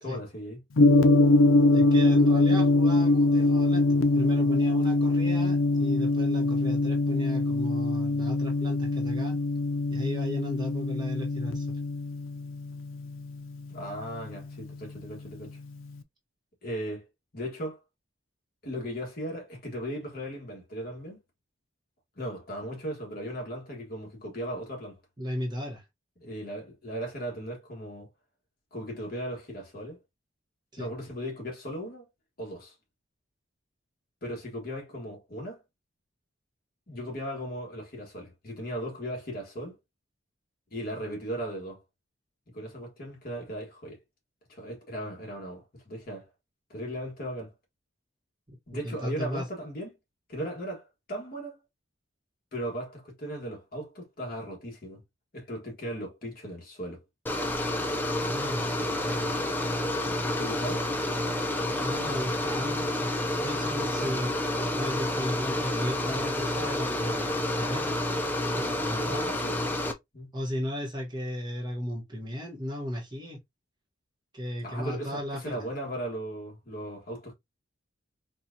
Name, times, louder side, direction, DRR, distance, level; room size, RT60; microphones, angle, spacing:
voice 1, 0.0-0.6 13.7-15.6 16.6-17.1 17.3-17.8 18.6-21.2 22.2-25.0 26.2-28.1 28.7-30.0 30.8-32.1 32.4-32.7 34.2-35.6 36.9-39.8 40.7-41.8 42.5-44.0 44.5-46.3 46.7-47.5 48.7-49.9 50.3-51.6 52.5-55.0 55.3-57.0 60.4-60.8 69.0-69.6 70.1-70.3 74.6-77.3, equal, 45° left, 1.4 m, -37 dB
Gong, 0.8-14.9, left 2 dB, 80° left, 0.5 m, -23 dB
voice 2, 1.7-9.4 9.9-11.8 25.2-25.8 30.7-30.9 48.8-49.5 58.1-59.3 61.7-63.1 63.4-68.0 68.5-69.3 70.3-73.4 74.3-75.6, equal, 20° right, 1.0 m, -35 dB
sound 1, 57.3-69.9, left 1 dB, 10° left, 0.4 m, -29 dB
4.3 x 2.4 x 2.6 m
head